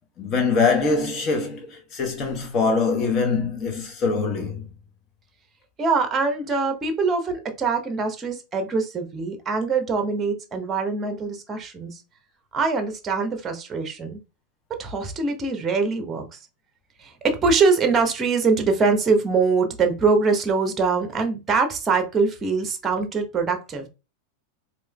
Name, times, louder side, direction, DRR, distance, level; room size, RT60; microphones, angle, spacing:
voice 1, 0.2-4.7, left 4 dB, 30° left, 1.0 m, -23 dB
voice 2, 5.8-12.0 12.5-14.2 14.8-16.4 17.0-23.9, right 4 dB, 20° right, 0.8 m, -23 dB
4.7 x 2.9 x 2.2 m
figure-of-eight pair, 90°, 0 cm